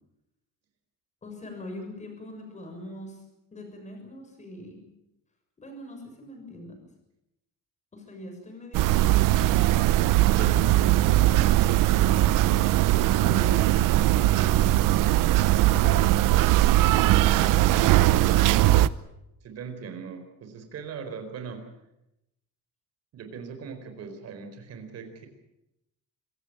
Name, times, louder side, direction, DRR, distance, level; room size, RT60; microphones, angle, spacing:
voice 1, 1.2-3.2 3.5-4.8 5.6-6.8 7.9-9.5 10.3-12.8 13.2-14.7 15.6-16.2 17.2-18.8, left 1 dB, 20° left, 4 dB, 6.8 m, -42 dB
sound 1, 8.7-18.9, right 15 dB, 80° right, 0.8 m, -20 dB
voice 2, 19.4-21.6 23.1-25.3, right 6 dB, 50° right, 7 dB, 4.5 m, -40 dB
25.5 x 16.0 x 8.9 m, 0.88 s
cardioid pair, 170°, 32 cm